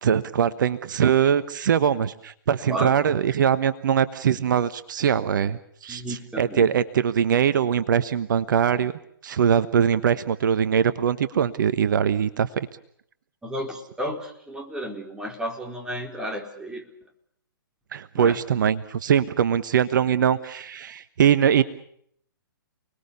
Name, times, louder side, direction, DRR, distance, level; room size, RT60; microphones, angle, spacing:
voice 1, 0.0-8.9 9.2-12.7 17.9-21.6, right 8 dB, 60° right, 13 dB, 1.2 m, -22 dB
voice 2, 5.9-6.7 13.4-16.9 18.1-18.4, equal, 5° right, 1 dB, 4.1 m, -33 dB
30.0 x 20.5 x 6.9 m, 0.67 s
figure-of-eight pair, 125°, 12 cm